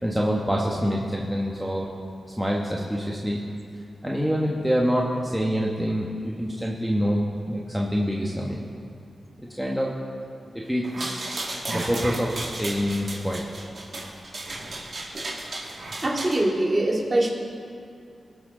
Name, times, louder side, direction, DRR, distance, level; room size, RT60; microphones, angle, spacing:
voice 1, 0.0-1.9 2.4-3.4 4.0-8.6 9.4-10.0 10.5-11.3 11.7-13.4, equal, 5° right, -3 dB, 1.2 m, -26 dB
sound 1, 10.8-16.4, right 2 dB, 55° right, 2.1 m, -34 dB
voice 2, 16.0-17.3, right 1 dB, 30° right, -2 dB, 2.2 m, -23 dB
18.5 x 6.2 x 3.8 m, 2.4 s
cardioid pair, 55°, 0 cm